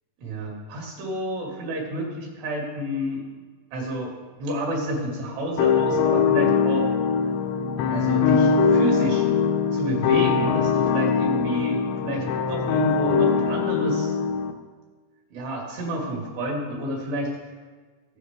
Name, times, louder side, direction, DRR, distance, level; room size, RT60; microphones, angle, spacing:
voice 1, 0.2-3.2 3.7-4.1 4.4-6.9 7.9-9.3 9.7-14.2 15.3-17.3, right 1 dB, 65° right, -3 dB, 4.3 m, -30 dB
sound 1, 5.6-14.5, left 6 dB, 80° left, 2.9 m, -22 dB
17.5 x 7.4 x 3.3 m, 1.4 s
omnidirectional pair, 5.4 m